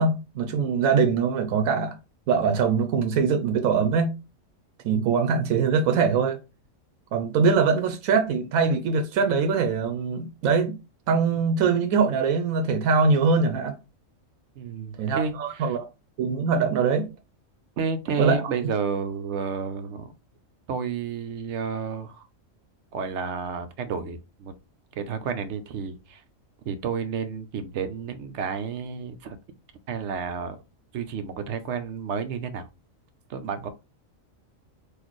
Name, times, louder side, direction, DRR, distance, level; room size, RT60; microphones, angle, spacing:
voice 1, 0.0-2.0 2.3-4.1 4.8-6.4 7.1-10.8 11.1-13.8 15.0-15.8 16.2-17.1 18.2-18.4, right 5 dB, 90° right, 1.0 m, -22 dB
voice 2, 14.6-15.8 17.8-20.1 20.7-22.3 22.9-24.5 25.0-26.2 26.7-29.4 29.9-30.6 30.9-32.7 33.3-33.7, right 6 dB, 65° right, 0.8 m, -31 dB
4.0 x 2.6 x 3.0 m
omnidirectional pair, 1.4 m